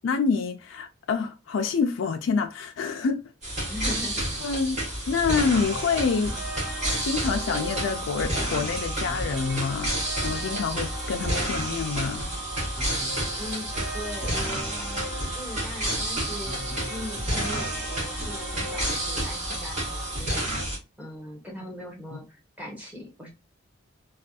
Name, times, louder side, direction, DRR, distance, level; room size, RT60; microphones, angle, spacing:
voice 1, 0.0-3.2 4.4-6.4 6.8-12.2 22.1-22.2, left 5 dB, 80° left, 0.4 m, -27 dB
sound 1, 3.4-20.8, right 1 dB, 40° right, 1.7 m, -30 dB
voice 2, 3.7-4.4 13.4-20.4 21.0-23.3, left 1 dB, 10° right, 1.0 m, -40 dB
sound 2, 5.4-20.2, right 2 dB, 75° right, 1.4 m, -38 dB
3.3 x 2.3 x 2.6 m
head